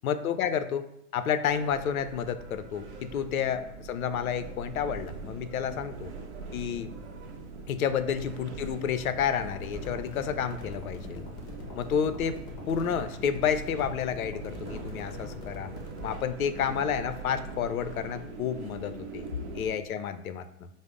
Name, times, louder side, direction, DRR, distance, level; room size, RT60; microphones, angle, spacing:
voice 1, 0.0-0.9 1.1-6.1 6.5-6.9 7.7-11.2 11.8-12.4 12.7-15.7 16.0-19.2 19.5-20.7, left 8 dB, 65° left, 11 dB, 0.5 m, -30 dB
sound 1, 1.4-19.7, right 4 dB, 50° right, 0.7 m, -42 dB
sound 2, 9.5-16.2, left 3 dB, 30° left, 0.9 m, -43 dB
4.9 x 2.0 x 3.6 m, 0.77 s
figure-of-eight pair, 115°, 46 cm